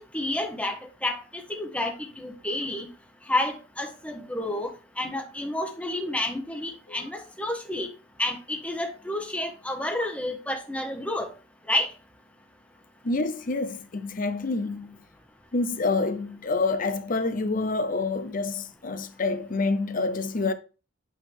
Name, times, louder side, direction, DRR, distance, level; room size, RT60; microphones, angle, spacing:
voice 1, 0.1-1.2 1.5-2.9 3.3-4.7 5.0-7.9 8.2-11.3 11.7-11.9, left 1 dB, 5° left, 1.3 m, -30 dB
voice 2, 13.0-15.0 15.5-20.5, left 3 dB, 45° left, 0.7 m, -27 dB
8.5 x 4.1 x 3.5 m
head